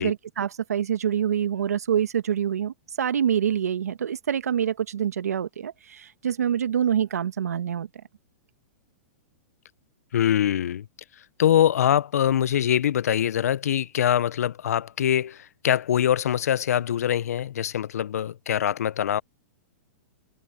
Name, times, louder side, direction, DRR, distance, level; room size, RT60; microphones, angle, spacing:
voice 1, 0.0-7.9, right 9 dB, 90° right, 1.4 m, -26 dB
voice 2, 10.1-10.9 11.4-19.2, left 10 dB, 80° left, 0.6 m, -23 dB
hypercardioid pair, 130°, 8 cm